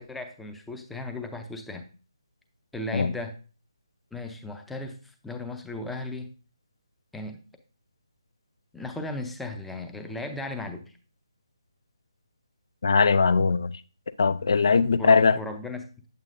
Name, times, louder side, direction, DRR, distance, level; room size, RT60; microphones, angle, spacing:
voice 1, 0.0-1.9 2.7-3.3 4.1-6.3 7.1-7.4 8.7-11.0 15.0-15.9, left 2 dB, 5° left, 0.6 m, -36 dB
voice 2, 12.8-13.7 14.2-15.4, left 5 dB, 50° left, 0.5 m, -20 dB
8.7 x 8.2 x 2.6 m
figure-of-eight pair, 145°, 3 cm